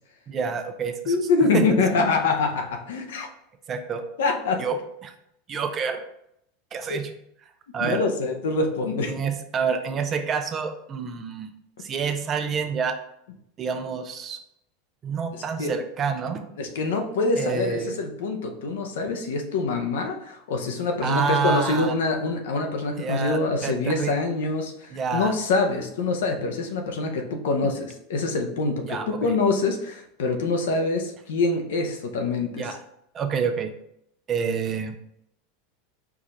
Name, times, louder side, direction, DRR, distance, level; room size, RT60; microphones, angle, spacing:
voice 1, 0.3-1.2 1.5-1.7 3.7-4.0 4.6-5.1 5.5-6.0 6.7-7.1 7.7-8.0 9.1-11.5 11.8-13.0 13.6-14.4 15.0-16.5 17.4-18.0 21.0-21.9 23.0-24.1 24.9-25.3 27.6-27.7 28.9-29.3 32.6-32.8 33.1-33.7 34.3-34.9, right 5 dB, 30° right, 7 dB, 0.5 m, -28 dB
voice 2, 1.1-3.3 4.2-4.6 6.9-7.0 7.8-9.1 15.3-15.8 16.6-32.7, left 3 dB, 85° left, 4 dB, 0.7 m, -25 dB
4.8 x 2.5 x 4.1 m, 0.76 s
supercardioid pair, 130°, 0 cm